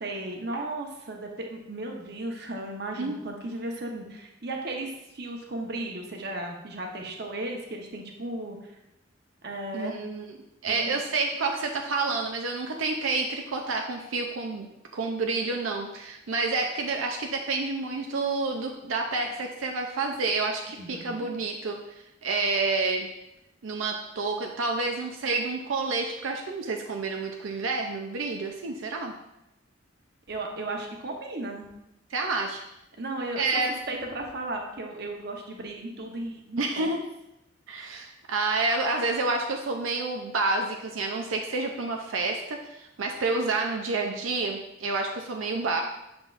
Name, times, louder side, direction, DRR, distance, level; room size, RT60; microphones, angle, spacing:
voice 1, 0.0-8.7 9.4-9.9 10.7-10.9 20.8-21.3 30.3-31.6 33.0-33.6 33.9-36.9, right 2 dB, 55° right, 2 dB, 0.9 m, -35 dB
voice 2, 9.7-10.3 10.6-14.7 14.9-21.8 22.2-23.1 23.6-29.1 32.1-32.6 33.4-33.8 36.6-37.0 37.7-45.8, right 3 dB, 85° right, 2 dB, 0.5 m, -29 dB
6.3 x 5.9 x 2.5 m, 0.89 s
head